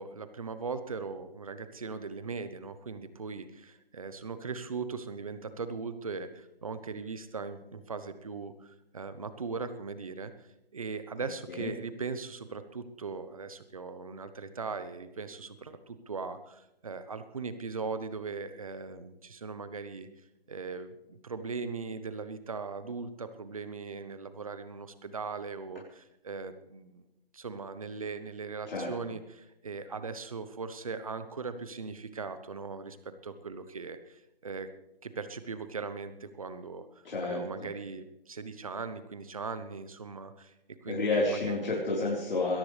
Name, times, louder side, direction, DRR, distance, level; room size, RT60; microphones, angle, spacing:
voice 1, 0.0-10.3 10.7-20.1 20.5-27.0 27.3-34.7 35.0-36.9 37.2-41.5, right 4 dB, 35° right, 11 dB, 1.0 m, -39 dB
voice 2, 37.0-37.7 40.9-42.6, left 2 dB, 65° left, -4 dB, 4.4 m, -30 dB
21.0 x 17.0 x 3.4 m, 0.90 s
hypercardioid pair, 175°, 30 cm